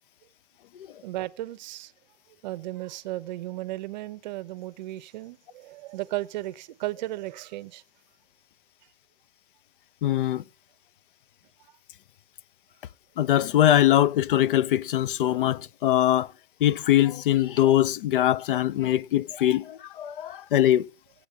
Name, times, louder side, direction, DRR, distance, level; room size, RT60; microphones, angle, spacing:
voice 1, 1.0-1.9 2.4-7.8, right 16 dB, 45° right, 0.6 m, -35 dB
voice 2, 10.0-10.4 13.2-16.3 16.6-20.9, left 12 dB, 55° left, 0.4 m, -22 dB
16.0 x 8.2 x 3.4 m
hypercardioid pair, 135°, 32 cm